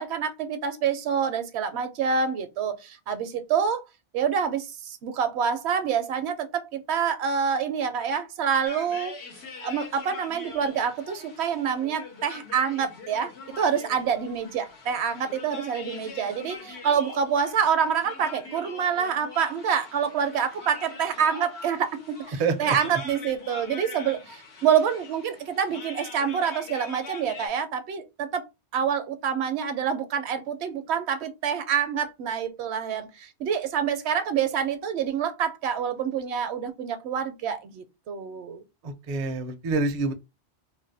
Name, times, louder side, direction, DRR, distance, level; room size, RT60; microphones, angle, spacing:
voice 1, 0.0-3.8 4.1-9.2 9.6-28.4 28.7-38.6, right 7 dB, 75° right, 0.8 m, -27 dB
sound 1, 8.7-27.5, left 4 dB, 75° left, 1.1 m, -43 dB
voice 2, 22.4-22.8 38.8-40.1, right 3 dB, 50° right, 0.5 m, -27 dB
2.6 x 2.1 x 3.8 m
omnidirectional pair, 1.2 m